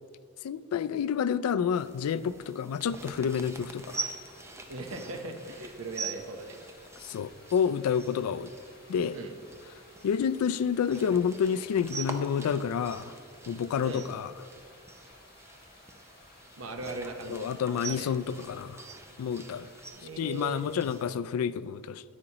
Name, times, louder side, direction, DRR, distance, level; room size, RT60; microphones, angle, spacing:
voice 1, 0.4-4.0 7.0-8.5 8.9-9.1 10.0-13.1 13.5-14.3 17.3-18.8 19.2-19.7 20.2-22.0, left 7 dB, 85° left, 16 dB, 0.3 m, -29 dB
sound 1, 1.7-21.2, right 3 dB, 10° right, 0.5 m, -44 dB
Stream, 3.6-19.9, left 3 dB, 45° left, 1.5 m, -57 dB
voice 2, 4.7-6.6 9.1-9.3 13.8-14.1 16.6-17.5 17.9-18.1 19.9-20.7, right 2 dB, 70° right, 4 dB, 0.9 m, -39 dB
9.9 x 8.7 x 2.9 m, 2.4 s
head